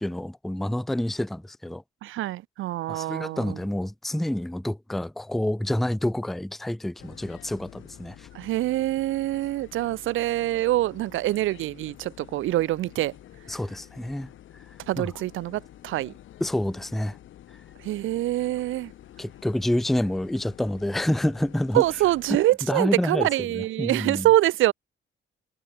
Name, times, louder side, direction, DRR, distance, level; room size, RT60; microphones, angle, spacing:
voice 1, 0.0-1.8 2.9-8.3 13.5-14.3 15.0-15.1 16.4-17.2 19.2-21.8 22.7-23.3 23.5-24.3, left 1 dB, ahead, 0.4 m, -28 dB
voice 2, 2.0-3.6 8.3-13.1 14.9-16.1 17.8-18.9 21.7-24.7, right 15 dB, 85° right, 0.9 m, -25 dB
sound 1, 7.0-22.4, left 12 dB, 75° left, 2.6 m, -49 dB
cardioid pair, 90°, 20 cm